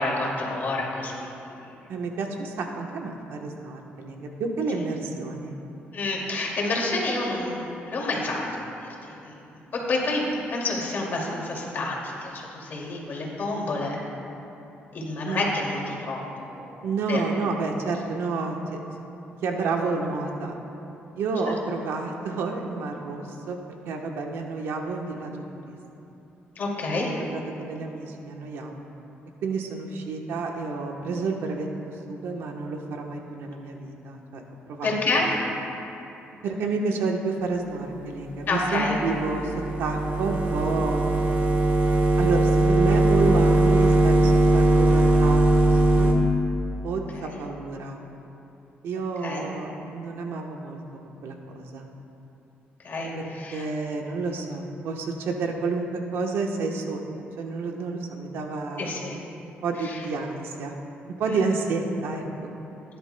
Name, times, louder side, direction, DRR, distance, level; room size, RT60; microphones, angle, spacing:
voice 1, 0.0-1.3 1.6-1.7 5.9-8.7 9.0-9.4 9.7-10.2 10.5-14.0 14.9-17.2 26.6-27.2 34.8-35.4 38.5-39.0 47.1-47.3 49.2-49.4 52.8-53.6 58.8-59.2 59.8-60.0, left 2 dB, 50° left, -2 dB, 2.4 m, -29 dB
voice 2, 1.9-5.6 15.2-15.4 16.8-18.8 19.4-20.6 21.1-23.6 23.8-25.8 27.1-28.8 29.4-31.7 32.1-34.4 34.7-34.9 36.4-39.5 39.8-41.3 42.2-46.2 46.8-48.0 48.8-51.9 53.1-57.0 57.4-59.0 59.6-60.7 61.2-62.2, right 3 dB, 80° right, 2 dB, 1.1 m, -30 dB
sound 1, 38.4-46.1, right 2 dB, 45° right, 1.6 m, -20 dB
17.0 x 10.5 x 2.2 m, 2.9 s
cardioid pair, 105°, 4 cm